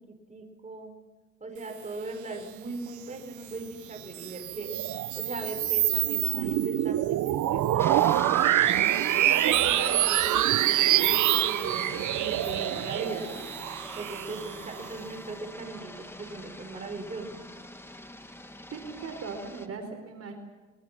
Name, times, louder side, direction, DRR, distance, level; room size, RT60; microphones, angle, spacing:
voice 1, 0.3-0.9 1.4-8.5 9.1-17.5, right 3 dB, 25° right, 3 dB, 5.2 m, -39 dB
sound 1, 4.0-14.9, right 14 dB, 80° right, 0.9 m, -25 dB
sound 2, 7.8-19.7, left 1 dB, 10° left, 2.0 m, -42 dB
voice 2, 18.7-20.3, right 4 dB, 55° right, 4 dB, 4.7 m, -38 dB
27.5 x 22.5 x 6.2 m, 1.3 s
cardioid pair, 90°, 30 cm